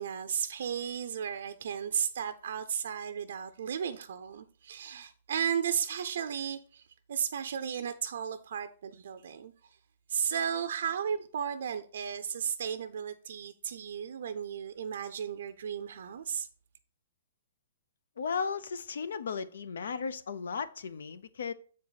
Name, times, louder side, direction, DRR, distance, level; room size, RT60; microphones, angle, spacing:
voice 1, 0.0-9.8 10.1-16.5, right 8 dB, 60° right, 0.5 m, -34 dB
voice 2, 18.2-21.5, left 5 dB, 90° left, 0.6 m, -35 dB
7.4 x 4.6 x 4.0 m
hypercardioid pair, 175°, 0 cm